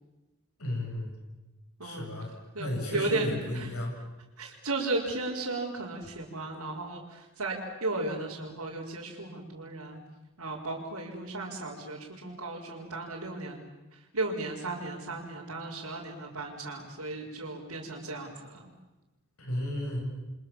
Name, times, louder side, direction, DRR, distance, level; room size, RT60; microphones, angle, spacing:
voice 1, 0.6-1.1 1.8-2.3 2.6-3.9 19.4-20.0, left 1 dB, 85° left, 1 dB, 7.7 m, -33 dB
voice 2, 1.8-2.1 2.5-3.7 4.4-10.0 10.4-13.6 13.9-18.7, right 2 dB, 80° right, -6 dB, 4.9 m, -35 dB
29.5 x 25.5 x 7.4 m, 1.1 s
head